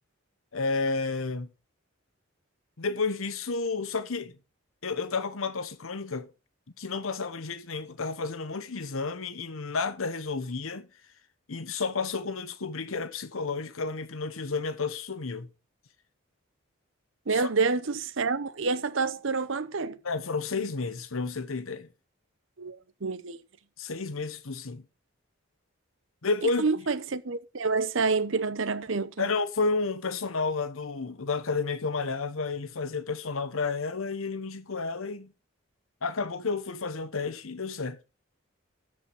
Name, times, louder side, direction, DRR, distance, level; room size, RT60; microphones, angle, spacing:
voice 1, 0.5-1.5 2.8-4.3 4.8-6.3 6.8-10.9 11.5-15.5 17.3-17.5 20.0-21.9 23.8-24.8 26.2-26.8 29.2-35.3 36.0-38.0, left 4 dB, 75° left, 1.0 m, -31 dB
voice 2, 17.3-20.0 22.6-23.4 26.6-29.3, right 4 dB, 65° right, 0.8 m, -28 dB
13.5 x 4.9 x 5.5 m
head